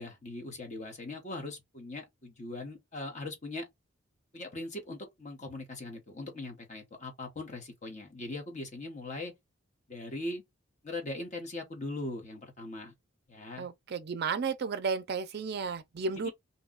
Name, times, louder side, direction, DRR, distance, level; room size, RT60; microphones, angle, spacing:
voice 1, 0.0-3.7 4.3-9.3 9.9-10.4 10.8-12.9 13.3-13.7 16.2-16.3, left 2 dB, 35° left, 0.9 m, -40 dB
voice 2, 13.6-16.3, right 5 dB, 50° right, 0.4 m, -33 dB
2.7 x 2.2 x 3.7 m
head